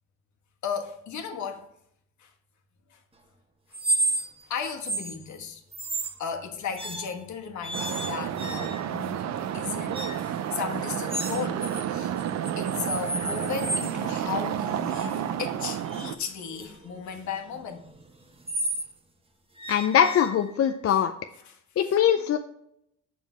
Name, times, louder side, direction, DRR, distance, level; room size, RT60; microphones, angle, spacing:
voice 1, 0.6-1.7 2.2-2.3 2.9-3.0 4.4-5.6 6.2-12.1 12.6-17.9 20.9-21.0 21.5-21.6 21.8-22.0, left 6 dB, 70° left, 1.4 m, -35 dB
sound 1, 3.7-4.5 4.8-5.2 5.7-6.2 6.8-7.3 7.6-9.0 9.9-10.3 11.1-11.8 12.2-14.0 14.6-18.9 19.6-20.7, right 2 dB, 20° right, 1.1 m, -33 dB
sound 2, 7.7-16.2, right 10 dB, 60° right, 0.6 m, -31 dB
voice 2, 19.7-21.1 21.8-22.4, left 9 dB, 50° left, 0.5 m, -22 dB
7.3 x 5.3 x 4.3 m
cardioid pair, 90°, 30 cm